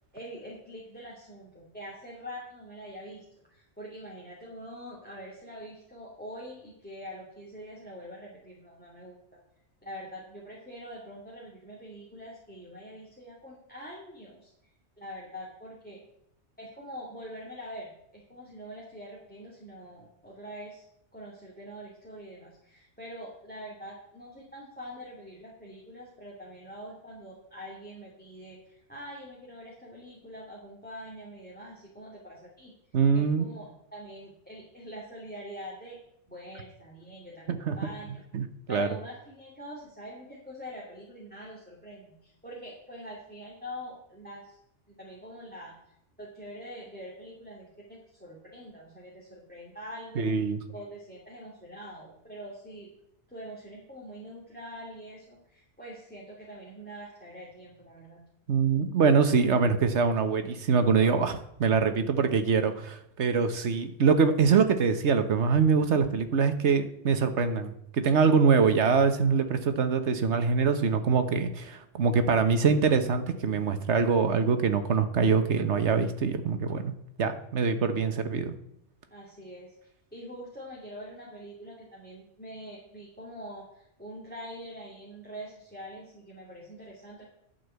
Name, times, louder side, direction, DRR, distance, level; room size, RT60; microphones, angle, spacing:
voice 1, 0.1-9.2 9.8-14.5 15.0-16.0 16.6-32.7 33.1-36.0 36.3-38.2 38.7-44.6 44.9-45.7 46.2-50.3 50.7-52.9 53.3-58.2 79.1-79.7 80.1-87.2, equal, 10° left, -4 dB, 2.5 m, -44 dB
voice 2, 32.9-33.5 37.5-37.8 38.3-38.9 50.2-50.6 58.5-76.9 77.2-78.6, right 5 dB, 75° right, 9 dB, 1.4 m, -24 dB
11.0 x 5.8 x 8.1 m, 0.75 s
omnidirectional pair, 1.2 m